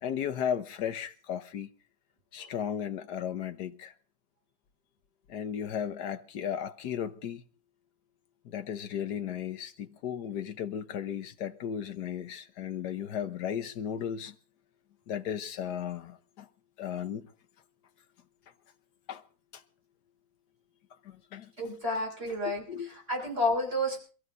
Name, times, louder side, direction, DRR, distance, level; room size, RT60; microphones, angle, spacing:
voice 1, 0.0-1.7 2.3-3.9 5.3-7.4 8.4-14.3 15.1-16.5 16.8-17.3 19.1-19.2 19.5-19.6 21.0-21.5 22.4-22.9, left 9 dB, 60° left, 1.3 m, -35 dB
voice 2, 21.6-24.0, left 1 dB, 30° right, 5.7 m, -31 dB
28.0 x 14.5 x 2.6 m
omnidirectional pair, 2.3 m